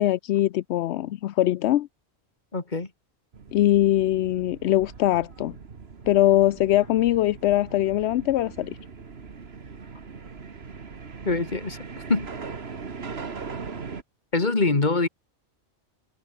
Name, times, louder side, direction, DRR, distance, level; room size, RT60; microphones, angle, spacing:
voice 1, 0.0-1.9 3.5-5.6 6.1-8.8, left 13 dB, 80° left, 0.8 m, -22 dB
voice 2, 2.5-2.9 11.2-11.8 12.1-12.3 14.3-15.1, left 3 dB, 45° left, 2.3 m, -23 dB
sound 1, 3.3-14.0, right 5 dB, 70° right, 1.9 m, -40 dB
omnidirectional pair, 1.1 m